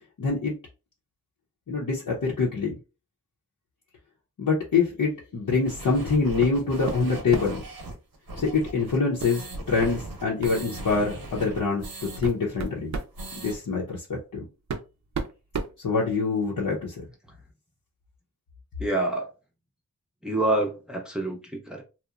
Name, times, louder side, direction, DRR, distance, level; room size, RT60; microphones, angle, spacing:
voice 1, 0.2-0.5 1.7-2.7 4.4-7.6 8.4-11.9 12.2-12.9 13.4-14.5 15.8-17.0, left 4 dB, 70° left, 0.7 m, -25 dB
sound 1, 5.6-12.2 12.5-12.6 12.9-13.6, right 2 dB, 85° right, 0.9 m, -38 dB
sound 2, 6.4-6.6 6.9-7.7 9.2-9.4 9.8-9.9 10.4-10.6 11.4-11.5 12.0-13.2 14.2-14.3 14.7-16.4, right 4 dB, 55° right, 0.5 m, -33 dB
voice 2, 18.8-19.3 20.2-21.8, right 2 dB, ahead, 0.5 m, -27 dB
2.8 x 2.0 x 2.3 m
wide cardioid pair, 70°, 34 cm